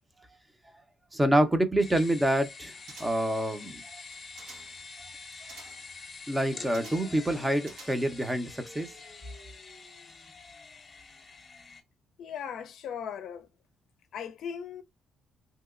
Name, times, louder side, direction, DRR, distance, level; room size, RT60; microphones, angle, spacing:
voice 1, 1.1-2.7 3.0-4.0 6.3-8.9, right 1 dB, 15° right, 0.6 m, -27 dB
sound 1, 1.8-11.8, left 4 dB, 35° left, 0.8 m, -46 dB
sound 2, 2.9-3.4 4.0-4.8 5.5-5.9 6.7-7.2 7.6-8.3 8.6-8.7, right 4 dB, 80° right, 1.2 m, -50 dB
voice 2, 12.2-13.5 14.1-14.8, left 8 dB, 70° left, 0.4 m, -38 dB
3.0 x 2.8 x 2.4 m
cardioid pair, 90°, 0 cm